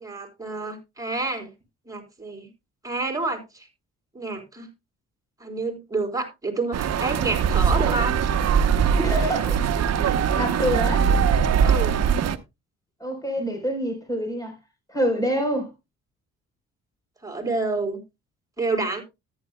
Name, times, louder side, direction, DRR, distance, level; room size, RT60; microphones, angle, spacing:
voice 1, 0.0-1.5 1.9-2.5 2.8-3.7 4.1-4.7 5.4-8.2 11.6-12.0 17.2-18.0 18.6-19.0, right 3 dB, 10° right, 3.8 m, -28 dB
sound 1, 6.7-12.4, right 7 dB, 60° right, 0.9 m, -21 dB
voice 2, 9.0-9.6 10.0-11.1 13.0-14.5 14.9-15.7, equal, 10° left, 3.9 m, -26 dB
13.5 x 10.5 x 2.2 m
cardioid pair, 90°, 30 cm